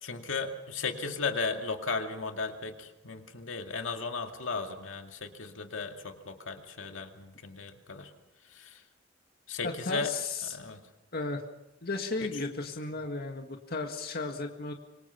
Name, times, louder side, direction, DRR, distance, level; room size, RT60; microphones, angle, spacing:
voice 1, 0.0-8.1 8.5-8.8 9.5-10.1 10.4-10.8 12.2-12.3, left 4 dB, 75° left, 4 dB, 2.3 m, -35 dB
voice 2, 9.6-10.6 11.1-11.4 11.8-14.7, left 3 dB, 55° left, 3 dB, 1.9 m, -34 dB
26.0 x 24.5 x 5.9 m, 0.89 s
head